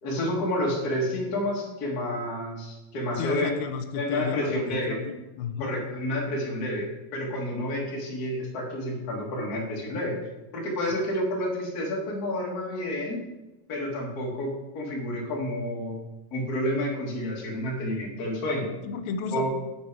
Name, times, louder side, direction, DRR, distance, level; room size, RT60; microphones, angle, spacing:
voice 1, 0.0-3.6 3.9-5.0 5.6-10.2 10.5-13.2 13.7-16.0 16.3-18.7 19.3-19.5, left 1 dB, 40° left, -2 dB, 1.5 m, -29 dB
voice 2, 3.2-5.8 18.8-19.5, left 6 dB, 85° left, 9 dB, 2.4 m, -33 dB
7.4 x 6.7 x 4.8 m, 1.0 s
omnidirectional pair, 4.1 m